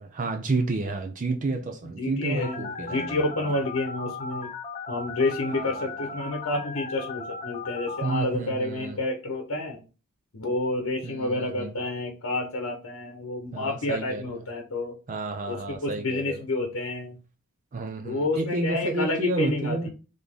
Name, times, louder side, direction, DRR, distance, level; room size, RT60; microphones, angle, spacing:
voice 1, 0.1-3.2 5.5-5.9 8.0-9.0 11.0-11.8 13.5-14.4 15.1-16.4 17.7-19.9, right 3 dB, 35° right, 0.5 m, -30 dB
voice 2, 1.9-4.5 4.9-9.8 10.3-14.9 15.5-17.2 18.0-19.9, left 2 dB, 70° left, 0.9 m, -29 dB
Telephone, 2.4-8.2, left 4 dB, 30° left, 0.7 m, -37 dB
4.1 x 3.4 x 3.5 m
head